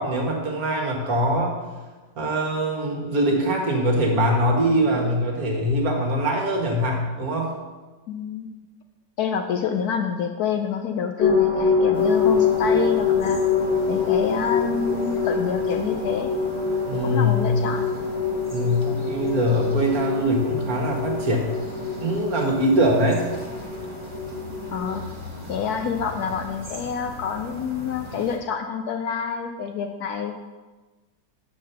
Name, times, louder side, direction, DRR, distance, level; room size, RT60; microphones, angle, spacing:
voice 1, 0.0-1.6 2.2-7.5 16.8-17.5 18.5-21.5 22.0-23.2, equal, 55° right, 0 dB, 1.7 m, -22 dB
voice 2, 8.1-8.5 9.2-13.4 13.9-16.3 17.0-17.9 24.7-25.0 25.5-30.4, left 7 dB, 70° left, 5 dB, 1.0 m, -27 dB
sound 1, 11.2-25.0, left 5 dB, 30° left, 1.3 m, -25 dB
sound 2, 11.9-28.4, equal, 20° right, 1.1 m, -39 dB
7.4 x 4.7 x 6.7 m, 1.3 s
omnidirectional pair, 2.0 m